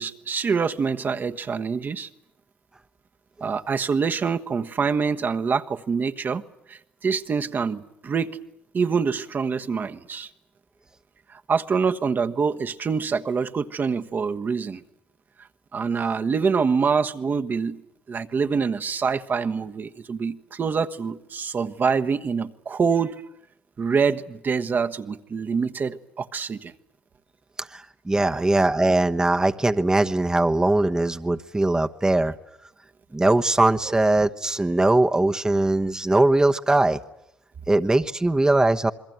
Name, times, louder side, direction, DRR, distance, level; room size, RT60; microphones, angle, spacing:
voice 1, 0.0-2.1 3.4-6.4 6.7-8.4 8.7-10.3 11.5-14.8 15.7-17.8 18.1-23.2 23.8-26.7 28.3-28.4 33.8-34.0, right 5 dB, 40° right, 1.3 m, -25 dB
voice 2, 27.6-32.3 33.1-37.0 37.7-38.9, right 2 dB, 15° right, 1.1 m, -21 dB
28.0 x 22.0 x 9.2 m
supercardioid pair, 65°, 5 cm